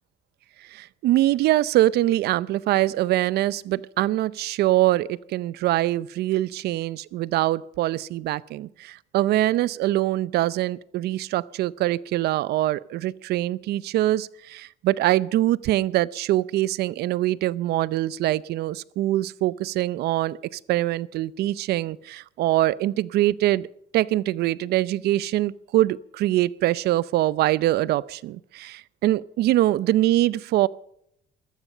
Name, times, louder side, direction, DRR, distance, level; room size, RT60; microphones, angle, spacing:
voice 1, 0.6-23.7 23.9-30.7, right 15 dB, 75° right, 21 dB, 0.6 m, -23 dB
14.5 x 14.0 x 5.6 m, 0.73 s
cardioid pair, 110°, 17 cm